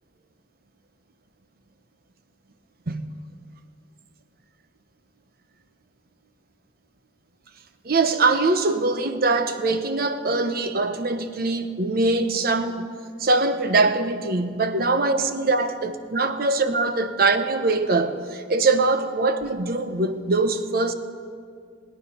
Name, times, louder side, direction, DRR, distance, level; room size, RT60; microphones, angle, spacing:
voice 1, 7.8-12.8 13.2-20.9, right 3 dB, 55° right, 0.9 m, -22 dB
20.0 x 9.5 x 5.6 m
head